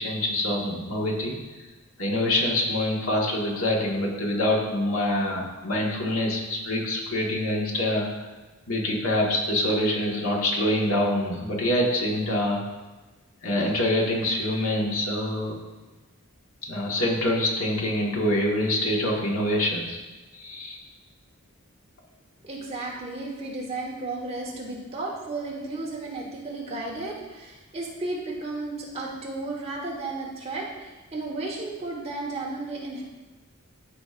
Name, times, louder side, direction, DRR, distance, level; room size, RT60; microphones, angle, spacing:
voice 1, 0.0-1.3 2.0-8.1 8.7-12.6 13.4-15.5 16.7-20.0 20.3-20.8, left 1 dB, 70° left, -2 dB, 1.6 m, -25 dB
voice 2, 22.4-33.0, right 2 dB, 30° right, -3 dB, 1.4 m, -33 dB
14.0 x 5.1 x 2.5 m, 1.2 s
head